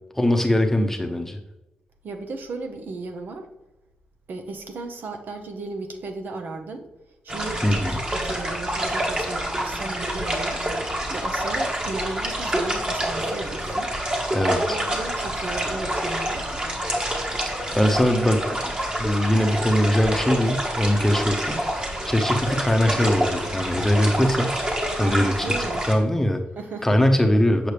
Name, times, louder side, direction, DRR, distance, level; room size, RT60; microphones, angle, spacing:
voice 1, 0.1-1.4 7.6-8.0 14.3-14.8 17.8-18.7 19.0-21.6 22.1-24.6 25.0-25.5 25.9-26.4 26.8-27.7, equal, 10° left, 4 dB, 0.8 m, -21 dB
voice 2, 2.0-3.5 4.3-6.9 7.2-10.6 11.1-13.9 14.6-16.4 25.0-25.9 26.6-27.0, right 3 dB, 65° right, 5 dB, 0.9 m, -35 dB
sound 1, 7.3-25.9, right 1 dB, 25° right, 1.6 m, -27 dB
8.1 x 5.8 x 3.4 m, 0.97 s
cardioid pair, 75°, 3 cm